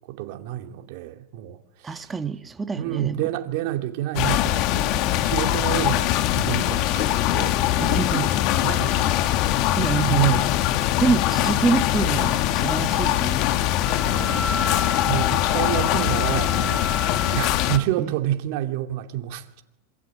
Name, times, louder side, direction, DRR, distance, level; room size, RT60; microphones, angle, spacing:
voice 1, 0.1-2.0 2.8-6.1 6.3-9.4 10.1-10.6 14.0-14.7 15.1-16.8 17.3-19.6, right 12 dB, 60° right, 2.7 m, -29 dB
voice 2, 1.8-3.3 7.8-8.3 9.5-10.4 11.0-13.5 18.0-18.1, right 5 dB, 15° right, 1.5 m, -26 dB
sound 1, 4.1-17.8, left 13 dB, 50° left, 1.8 m, -22 dB
Wind instrument woodwind instrument, 13.8-17.8, left 4 dB, 25° left, 2.5 m, -31 dB
26.5 x 23.5 x 9.0 m
supercardioid pair, 130°, 0 cm